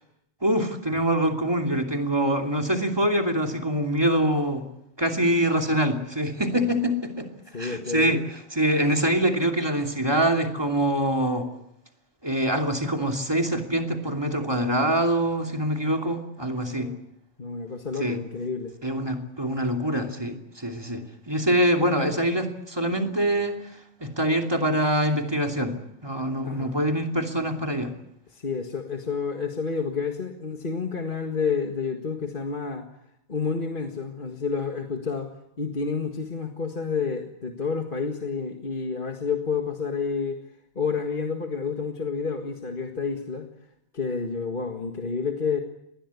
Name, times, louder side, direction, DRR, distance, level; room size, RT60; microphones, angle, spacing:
voice 1, 0.4-4.7 5.0-7.3 7.6-8.2 8.5-11.5 12.2-16.9 18.0-18.2 18.8-23.6 24.0-27.9, right 1 dB, 20° right, 4 dB, 2.9 m, -24 dB
voice 2, 7.5-8.2 16.8-17.0 17.4-18.7 26.5-26.8 28.3-32.9 33.3-35.3 35.6-40.4 40.8-43.5 43.9-45.6, left 5 dB, 50° left, 4 dB, 2.0 m, -29 dB
25.5 x 20.5 x 8.4 m, 0.81 s
omnidirectional pair, 1.2 m